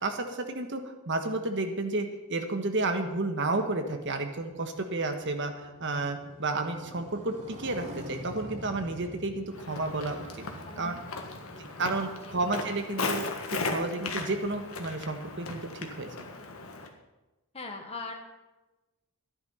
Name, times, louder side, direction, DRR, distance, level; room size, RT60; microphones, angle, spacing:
voice 1, 0.0-10.3 10.8-11.0 11.8-16.1, right 2 dB, 55° right, 5 dB, 1.4 m, -31 dB
Motorcycle, 4.5-13.5, equal, 30° right, 3.8 m, -46 dB
Walk footsteps, 9.5-16.9, left 3 dB, 65° left, 1.6 m, -37 dB
voice 2, 11.1-11.6 12.2-12.4 17.5-18.1, left 3 dB, 25° left, 2 dB, 1.4 m, -41 dB
12.5 x 10.5 x 5.6 m, 1.1 s
head